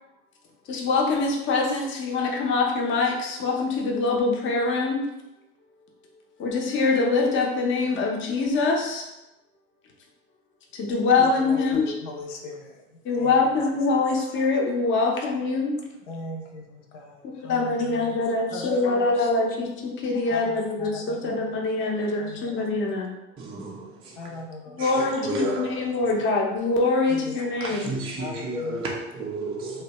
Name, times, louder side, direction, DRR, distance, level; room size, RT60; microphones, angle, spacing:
voice 1, 0.7-5.0 6.4-9.1 10.8-11.8 13.0-15.8 17.2-23.1 24.7-27.9, left 3 dB, 30° left, 0.6 m, -24 dB
voice 2, 11.2-12.8 13.1-13.7 14.1-14.3 16.1-19.3 20.3-21.5 22.2-22.7 24.2-25.1 25.4-25.6 27.1-27.4 27.7-27.9 28.2-28.8, left 2 dB, 70° left, 0.6 m, -39 dB
voice 3, 23.4-24.4 24.8-26.2 27.6-29.8, right 1 dB, 15° right, 0.4 m, -32 dB
2.8 x 2.1 x 2.9 m
hypercardioid pair, 90°, 38 cm